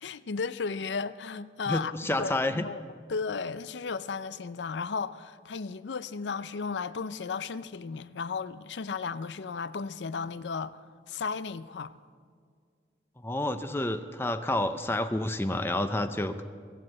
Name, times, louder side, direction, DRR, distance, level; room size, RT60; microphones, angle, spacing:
voice 1, 0.0-1.9 2.2-2.8 3.1-11.9, left 5 dB, 80° left, 0.5 m, -34 dB
voice 2, 1.7-2.6 13.2-16.4, left 1 dB, 15° left, 0.5 m, -29 dB
22.5 x 7.6 x 7.7 m
head